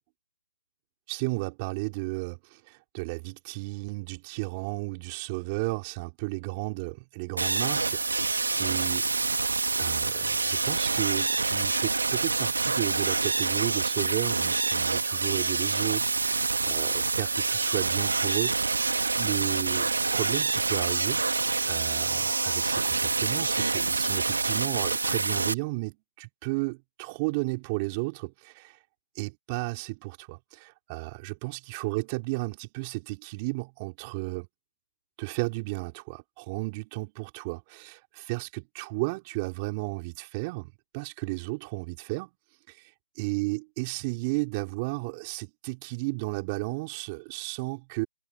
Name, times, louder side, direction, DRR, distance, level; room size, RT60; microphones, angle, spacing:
voice 1, 1.1-8.3 8.6-9.1 9.8-18.7 19.1-21.2 21.7-28.8 29.1-34.5 35.2-42.3 42.7-42.8 43.1-48.1, right 27 dB, 25° right, 4.8 m, -33 dB
sound 1, 7.4-25.5, right 3 dB, 80° right, 1.9 m, -27 dB
figure-of-eight pair, 150°, 0 cm